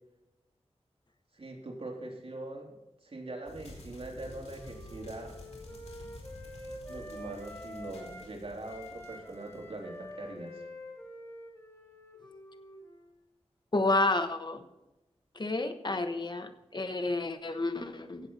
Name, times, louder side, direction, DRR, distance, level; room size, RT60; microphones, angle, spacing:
voice 1, 1.3-2.7 3.0-5.4 6.9-10.7, right 2 dB, 60° right, 0 dB, 3.4 m, -42 dB
sound 1, 3.5-10.2, left 1 dB, 70° left, 4.4 m, -50 dB
Wind instrument woodwind instrument, 3.9-8.3 8.6-13.1, left 1 dB, 25° left, 4.2 m, -48 dB
voice 2, 13.7-14.6 15.4-18.2, left 2 dB, 40° left, 8 dB, 1.2 m, -30 dB
16.0 x 8.0 x 4.1 m, 1.0 s
wide cardioid pair, 75°, 11 cm